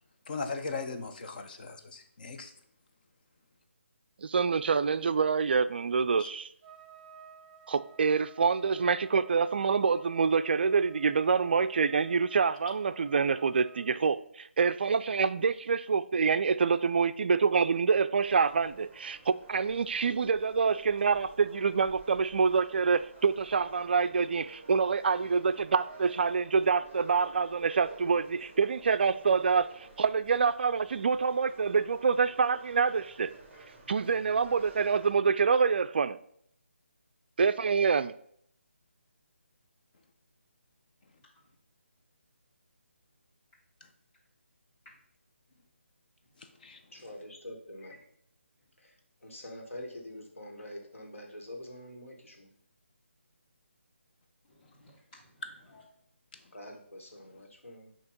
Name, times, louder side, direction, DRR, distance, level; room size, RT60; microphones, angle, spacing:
voice 1, 0.3-2.5 6.2-6.3 12.6-12.7 46.4-46.8 55.4-55.5 56.3-56.4, left 4 dB, 40° left, 5 dB, 0.8 m, -39 dB
voice 2, 4.2-6.5 7.7-33.3 33.9-36.2 37.4-38.1, right 5 dB, 50° right, 13 dB, 0.4 m, -26 dB
Trumpet, 6.6-13.9, right 7 dB, 30° right, 0.8 m, -54 dB
sound 1, 18.2-35.1, right 3 dB, 10° right, 1.3 m, -52 dB
voice 3, 46.9-47.9 49.2-52.5 56.5-57.9, left 1 dB, 90° left, 1 dB, 1.9 m, -45 dB
voice 4, 54.4-55.8, left 1 dB, 20° left, -9 dB, 2.1 m, -58 dB
8.1 x 2.9 x 5.1 m, 0.67 s
figure-of-eight pair, 160°, 7 cm